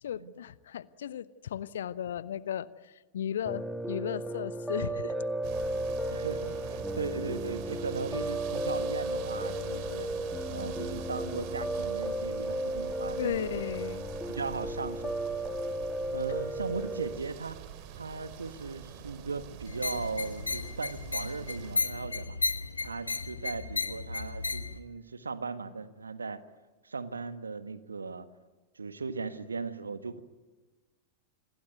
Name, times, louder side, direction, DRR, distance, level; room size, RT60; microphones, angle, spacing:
voice 1, 0.0-5.1 13.2-14.0, left 9 dB, 60° left, 19 dB, 0.9 m, -35 dB
Piano, 3.5-17.2, right 1 dB, ahead, 1.9 m, -34 dB
sound 1, 5.4-21.8, right 10 dB, 45° right, 2.7 m, -45 dB
voice 2, 6.1-10.1 10.5-13.5 14.3-15.1 16.1-17.6 18.0-22.4 22.8-26.4 26.8-28.3 28.7-30.2, right 4 dB, 75° right, 13 dB, 1.5 m, -37 dB
sound 2, 19.7-24.8, left 3 dB, 80° left, 1.2 m, -34 dB
28.5 x 20.5 x 9.4 m, 1.2 s
figure-of-eight pair, 90°, 0 cm